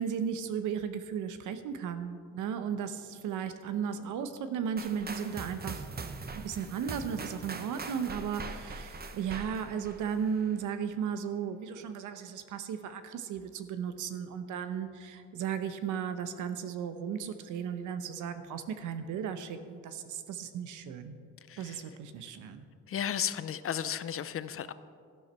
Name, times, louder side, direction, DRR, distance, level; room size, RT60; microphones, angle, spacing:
voice 1, 0.0-5.8 6.3-21.2 21.6-22.6, right 7 dB, 85° right, 10 dB, 0.9 m, -35 dB
sound 1, 4.8-10.6, right 4 dB, 30° right, 0.9 m, -42 dB
voice 2, 21.5-21.8 22.9-24.7, left 9 dB, 45° left, 14 dB, 0.6 m, -34 dB
12.5 x 11.5 x 4.4 m, 2.2 s
cardioid pair, 90°, 30 cm